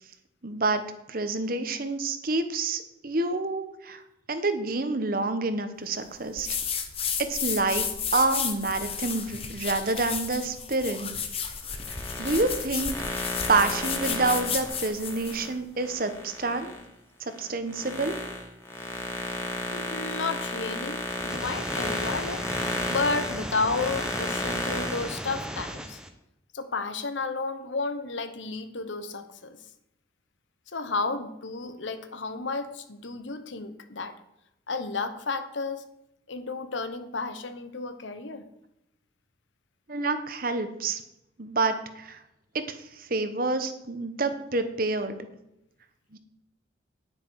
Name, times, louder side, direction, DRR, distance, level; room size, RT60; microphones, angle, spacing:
voice 1, 0.4-4.0 4.3-6.5 7.2-7.9 8.1-11.1 12.2-13.2 13.5-16.7 17.4-18.1 39.9-41.0 41.4-42.2 42.5-45.2 46.1-46.2, right 3 dB, 45° right, 9 dB, 1.1 m, -28 dB
sound 1, 6.4-15.4, left 7 dB, 30° left, 1.1 m, -32 dB
sound 2, 11.7-16.8 17.3-25.1, left 2 dB, 15° left, 2.0 m, -33 dB
voice 2, 19.7-22.4 22.9-26.0 26.5-29.6 30.7-34.2 34.7-35.8 36.3-38.5, left 3 dB, 75° left, 10 dB, 1.0 m, -32 dB
sound 3, 21.1-26.1, equal, 5° right, 0.8 m, -36 dB
9.9 x 9.6 x 4.7 m, 0.85 s
head